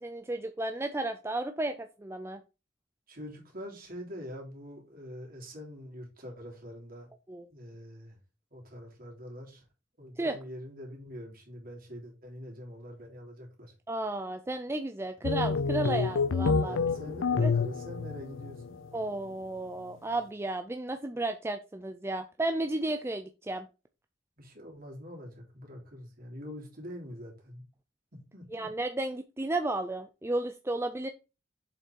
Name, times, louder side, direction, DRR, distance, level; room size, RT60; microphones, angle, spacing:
voice 1, 0.0-2.4 7.3-7.5 10.2-10.4 13.9-16.8 17.4-17.5 18.9-23.7 28.5-31.1, right 2 dB, 15° right, 0.5 m, -33 dB
voice 2, 3.1-7.1 7.5-8.2 8.5-9.6 10.0-13.7 16.6-18.8 24.4-27.6 28.1-28.7, equal, 50° right, 3.3 m, -44 dB
sound 1, 15.2-18.9, left 4 dB, 80° left, 0.5 m, -28 dB
7.3 x 5.6 x 4.5 m
head